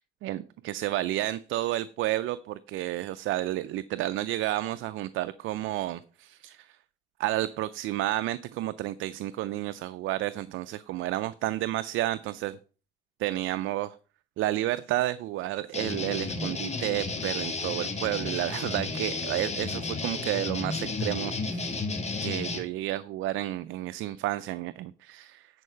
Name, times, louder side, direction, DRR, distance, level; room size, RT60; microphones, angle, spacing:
voice 1, 0.2-6.8 7.2-12.6 13.2-14.0 14.4-21.8 22.2-25.5, right 15 dB, 85° right, 14 dB, 0.4 m, -31 dB
sound 1, 15.7-22.6, left 3 dB, 35° left, 2.2 m, -32 dB
9.8 x 4.6 x 5.5 m, 0.37 s
cardioid pair, 90°, 20 cm